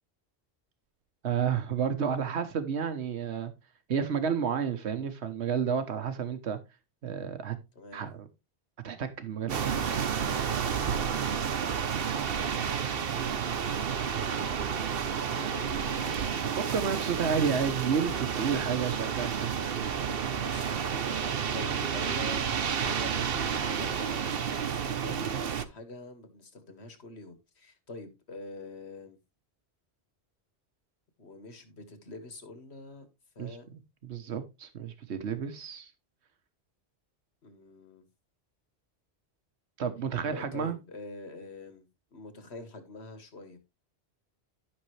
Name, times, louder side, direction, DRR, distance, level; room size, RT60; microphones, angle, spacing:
voice 1, 1.2-3.5 3.9-6.6 7.0-7.6 7.9-8.3 8.8-10.0 16.6-19.5 33.4-33.8 34.1-35.9 39.8-40.8, right 7 dB, 85° right, 1.3 m, -31 dB
sound 1, 9.5-25.6, right 7 dB, 60° right, 1.0 m, -30 dB
voice 2, 13.9-14.5 15.3-16.4 20.3-20.8 21.5-29.2 31.2-33.1 33.4-33.7 37.4-38.1 40.2-43.6, left 2 dB, 75° left, 2.0 m, -45 dB
11.5 x 6.6 x 3.2 m
omnidirectional pair, 1.1 m